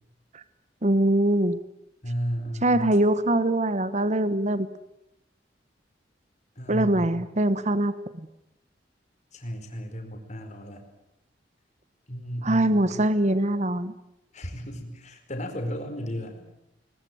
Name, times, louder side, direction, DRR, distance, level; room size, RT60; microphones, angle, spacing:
voice 1, 0.8-1.6 2.6-4.7 6.7-7.9 12.4-13.9, right 1 dB, 40° right, 14 dB, 1.1 m, -23 dB
voice 2, 2.0-2.9 6.6-7.2 9.3-10.8 12.1-13.0 14.3-16.4, equal, 40° left, 5 dB, 4.8 m, -34 dB
21.5 x 21.0 x 9.5 m, 0.85 s
head